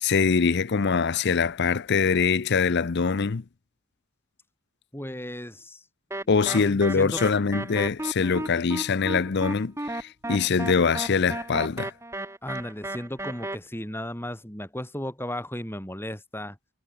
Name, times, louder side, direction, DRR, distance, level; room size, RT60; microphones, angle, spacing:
voice 1, 0.0-3.4 6.3-11.9, left 5 dB, 55° left, 0.6 m, -23 dB
voice 2, 4.9-5.9 6.2-7.2 12.4-16.6, left 1 dB, 10° left, 6.5 m, -35 dB
sound 1, 6.1-13.6, right 1 dB, 15° right, 6.4 m, -34 dB
head